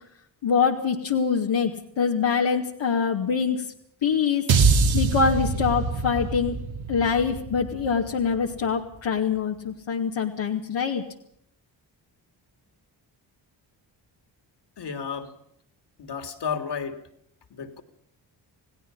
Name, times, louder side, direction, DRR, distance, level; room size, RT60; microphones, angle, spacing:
voice 1, 0.4-3.6 4.0-4.4 4.9-6.6 6.9-11.0, left 6 dB, 85° left, -1 dB, 2.5 m, -24 dB
sound 1, 4.5-8.8, right 4 dB, 90° right, 2.6 m, -24 dB
voice 2, 14.8-15.3 16.0-17.0 17.5-17.8, left 6 dB, 65° left, 8 dB, 3.4 m, -32 dB
29.5 x 18.0 x 5.6 m, 0.69 s
cardioid pair, 75°, 44 cm